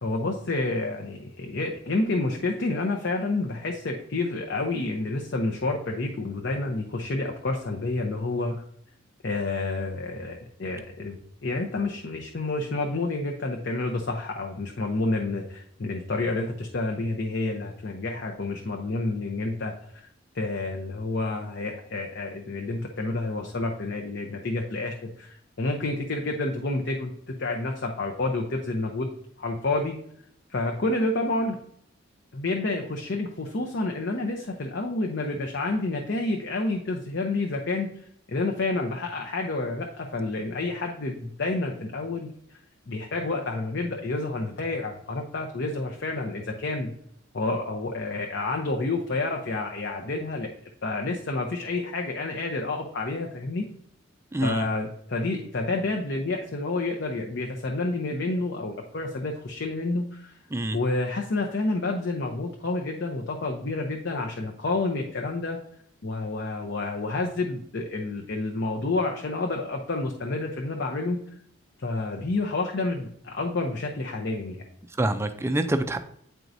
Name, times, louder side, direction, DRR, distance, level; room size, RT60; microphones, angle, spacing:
voice 1, 0.0-8.6 9.2-20.0 20.3-27.1 27.4-29.1 29.4-30.0 30.5-31.6 32.3-37.9 38.3-42.3 42.9-46.9 47.3-50.5 50.8-53.7 54.4-60.4 60.7-65.6 66.0-71.2 71.8-74.7, left 2 dB, 55° left, 2 dB, 0.7 m, -29 dB
voice 2, 54.3-54.7 60.5-60.8 75.0-76.0, right 1 dB, 10° right, 8 dB, 0.4 m, -26 dB
9.1 x 4.5 x 2.6 m, 0.67 s
head